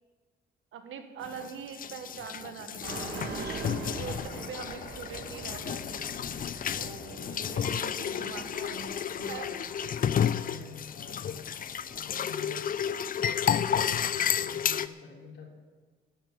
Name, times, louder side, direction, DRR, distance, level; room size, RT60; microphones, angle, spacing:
voice 1, 0.7-3.5 3.8-6.1 6.7-8.8 9.3-9.4, right 7 dB, 80° right, 8 dB, 1.5 m, -43 dB
sound 1, 1.2-14.9, left 8 dB, 45° left, 0.5 m, -32 dB
sound 2, 2.8-12.0, right 3 dB, 60° right, 2.8 m, -43 dB
voice 2, 8.0-12.6 13.2-15.5, left 3 dB, 65° left, 0 dB, 3.4 m, -48 dB
12.0 x 8.2 x 9.4 m, 1.4 s
cardioid pair, 90°, 20 cm